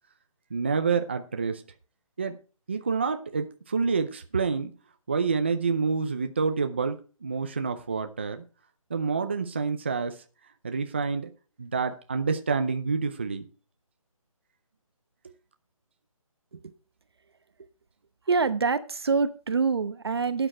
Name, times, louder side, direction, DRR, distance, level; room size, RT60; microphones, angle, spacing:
voice 1, 0.5-1.6 2.2-2.4 2.7-4.7 5.1-8.4 8.9-10.2 10.6-11.3 11.6-13.5, right 5 dB, 20° right, 8 dB, 0.5 m, -28 dB
voice 2, 18.3-20.5, right 4 dB, 45° right, 12 dB, 1.0 m, -26 dB
12.5 x 8.9 x 4.3 m, 0.35 s
hypercardioid pair, 175°, 18 cm